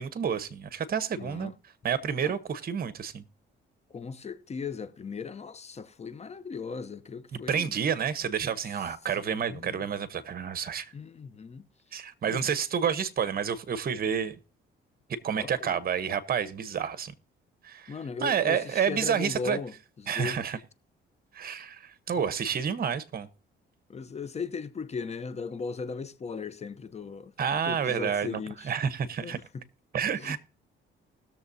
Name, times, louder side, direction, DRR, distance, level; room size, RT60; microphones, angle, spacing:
voice 1, 0.0-1.5 1.8-3.2 7.3-10.9 11.9-14.3 15.2-17.1 17.6-17.9 18.2-19.6 20.1-20.6 21.3-23.3 27.4-29.4 29.9-30.4, right 7 dB, 50° right, 1.0 m, -29 dB
voice 2, 1.1-1.5 2.2-2.3 3.9-7.7 9.1-9.8 10.9-11.7 12.2-12.5 15.4-15.8 17.9-20.4 23.9-27.3 27.7-28.7 29.2-29.6 30.2-30.4, left 5 dB, 35° left, 0.7 m, -38 dB
20.0 x 6.9 x 2.7 m
cardioid pair, 90°, 20 cm